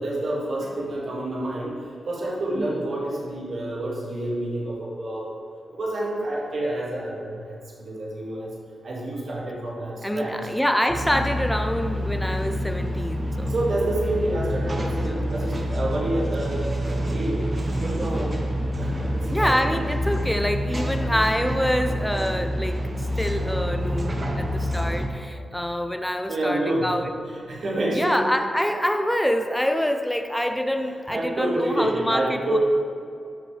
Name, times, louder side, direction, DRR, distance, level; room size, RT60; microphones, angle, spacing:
voice 1, 0.0-5.3 5.7-8.5 8.8-10.4 13.5-17.4 17.8-18.3 18.8-19.8 24.7-24.8 25.4-25.5 26.3-26.9 27.3-28.3 31.1-32.6, right 1 dB, 50° right, -4 dB, 2.0 m, -28 dB
voice 2, 10.0-13.5 15.0-15.2 18.0-18.4 19.3-27.1 27.9-32.6, equal, 5° left, 6 dB, 0.5 m, -26 dB
sound 1, 10.9-25.1, equal, 25° right, 0.8 m, -27 dB
12.5 x 5.8 x 3.3 m, 2.4 s
wide cardioid pair, 150°, 0 cm